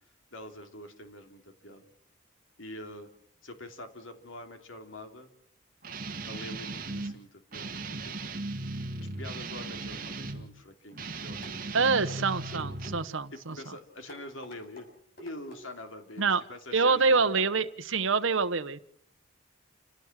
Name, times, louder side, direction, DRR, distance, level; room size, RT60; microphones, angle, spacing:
voice 1, 0.3-1.9 2.6-3.1 3.4-5.3 6.3-8.1 9.0-11.4 13.3-14.9 15.2-17.5, left 1 dB, 80° left, 6 dB, 3.1 m, -45 dB
Guitar, 5.8-7.1 7.5-10.5 10.9-13.1, right 2 dB, 45° right, 2.2 m, -37 dB
sound 1, 11.4-12.2 12.5-12.9 13.5-13.7 14.1-14.9 15.2-15.6 16.2-16.3 16.8-16.9, right 1 dB, 45° left, 7.3 m, -48 dB
voice 2, 11.7-13.5 16.2-16.4 16.7-18.8, right 4 dB, 80° right, 10 dB, 1.2 m, -26 dB
28.5 x 17.0 x 7.5 m, 0.66 s
head